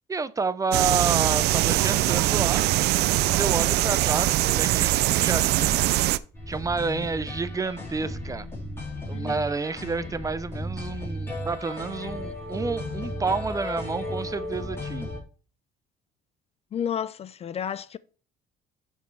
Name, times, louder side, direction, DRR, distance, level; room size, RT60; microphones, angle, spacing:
voice 1, 0.1-2.6 3.3-5.8 6.5-8.5 9.1-15.1, right 4 dB, 20° right, 0.5 m, -29 dB
sound 1, 0.7-6.2, right 16 dB, 75° right, 0.4 m, -22 dB
sound 2, 6.3-15.2, left 1 dB, 15° left, 4.2 m, -35 dB
voice 2, 16.7-18.0, left 8 dB, 40° left, 0.4 m, -31 dB
11.0 x 5.4 x 3.3 m
cardioid pair, 110°, 17 cm